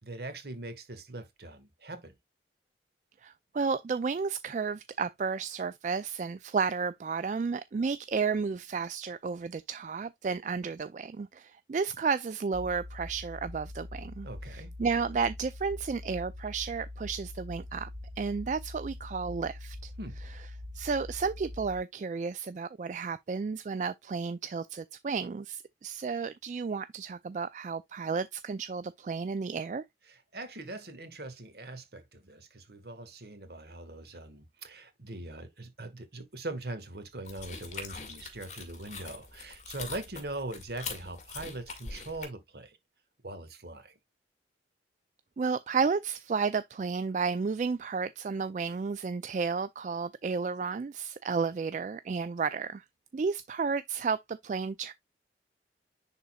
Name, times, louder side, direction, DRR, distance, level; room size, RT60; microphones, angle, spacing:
voice 1, 0.0-2.1 14.2-14.7 20.0-20.2 30.1-42.8 43.2-43.9, right 2 dB, 60° right, 1.6 m, -41 dB
voice 2, 3.2-17.9 18.2-19.9 20.7-29.8 45.4-52.8 53.1-54.9, right 5 dB, 45° right, 0.3 m, -32 dB
sound 1, 12.5-21.8, left 1 dB, 25° right, 0.7 m, -43 dB
sound 2, 37.2-42.2, left 4 dB, 40° left, 1.8 m, -43 dB
10.5 x 3.9 x 2.3 m
head